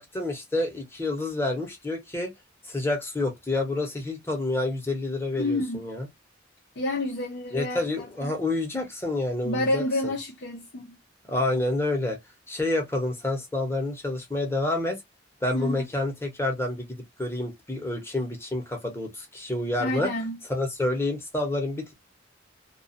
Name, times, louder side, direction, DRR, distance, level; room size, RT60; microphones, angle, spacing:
voice 1, 0.0-2.3 2.6-6.1 7.5-10.1 11.2-12.2 12.5-15.0 15.4-20.1 20.5-21.9, left 2 dB, 10° left, 0.8 m, -28 dB
voice 2, 5.4-5.9 6.8-8.3 9.4-11.0 15.5-15.9 19.8-20.4, left 1 dB, 60° left, 0.6 m, -29 dB
2.4 x 2.2 x 2.6 m
head